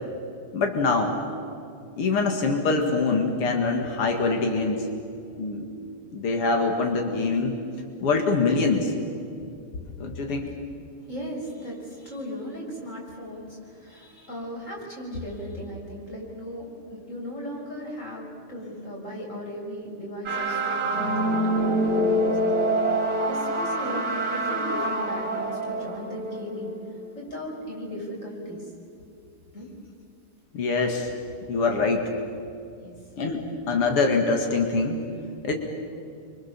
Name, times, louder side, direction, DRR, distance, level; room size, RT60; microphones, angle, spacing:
voice 1, 0.5-1.2 2.0-4.9 5.3-5.7 6.1-7.6 8.0-8.9 10.0-10.5 30.5-31.1 31.5-32.1 33.2-35.0 35.4-35.5, left 3 dB, 90° left, 3 dB, 3.0 m, -24 dB
voice 2, 11.1-22.6 23.3-26.7 27.1-28.6 29.5-29.7 31.7-31.9 32.8-32.9, equal, 35° left, -2 dB, 6.7 m, -37 dB
sound 1, 20.3-27.1, right 1 dB, 40° right, 2.4 m, -26 dB
28.5 x 25.0 x 7.1 m, 2.5 s
omnidirectional pair, 2.4 m